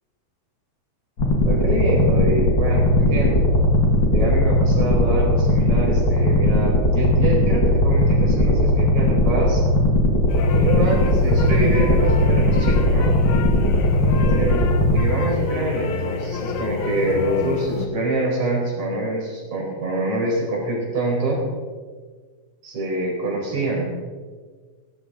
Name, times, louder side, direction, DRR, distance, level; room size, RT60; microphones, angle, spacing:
sound 1, 1.2-15.6, left 1 dB, 35° left, 2.2 m, -18 dB
voice 1, 1.5-3.4 4.1-9.6 10.5-13.2 14.1-21.4 22.6-23.9, right 2 dB, 55° right, -3 dB, 6.1 m, -25 dB
sound 2, 10.3-17.9, left 5 dB, 65° left, 2.2 m, -28 dB
17.5 x 14.5 x 4.0 m, 1.5 s
omnidirectional pair, 4.0 m